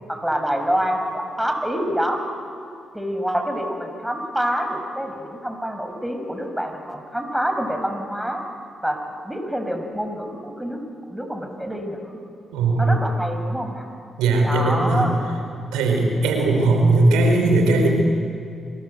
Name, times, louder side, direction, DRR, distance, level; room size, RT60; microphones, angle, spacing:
voice 1, 0.1-2.2 2.9-8.4 8.8-9.0 9.2-12.2 12.8-13.9 14.4-15.1, equal, 5° right, 5 dB, 6.2 m, -26 dB
voice 2, 12.5-13.0 14.2-15.1 15.7-17.9, right 2 dB, 90° right, 3 dB, 4.8 m, -18 dB
29.0 x 22.5 x 8.1 m, 2.6 s
supercardioid pair, 50°, 0 cm